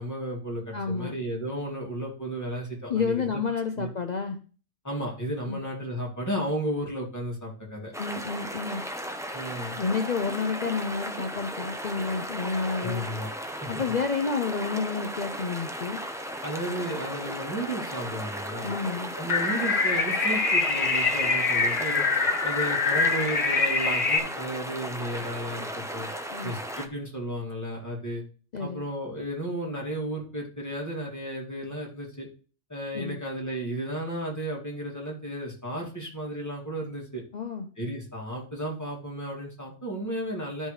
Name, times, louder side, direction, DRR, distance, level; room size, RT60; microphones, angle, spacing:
voice 1, 0.0-3.4 3.8-3.9 4.8-7.9 9.3-9.8 12.8-13.3 13.6-13.7 16.4-18.7 19.2-22.1 22.4-26.1 26.4-28.2 28.6-32.3 32.7-37.2 37.8-40.7, right 1 dB, 15° left, -3 dB, 2.3 m, -33 dB
voice 2, 0.7-1.2 2.9-4.4 5.5-5.6 8.0-8.8 9.7-13.0 13.7-16.0 18.6-19.1 26.3-26.5 28.5-28.8 32.9-33.2 37.3-37.7, left 5 dB, 45° left, 5 dB, 0.6 m, -30 dB
sound 1, 7.9-26.9, equal, 5° right, 0.4 m, -36 dB
sound 2, 19.3-24.2, left 4 dB, 75° left, 1.5 m, -24 dB
12.5 x 5.4 x 3.2 m, 0.39 s
omnidirectional pair, 1.3 m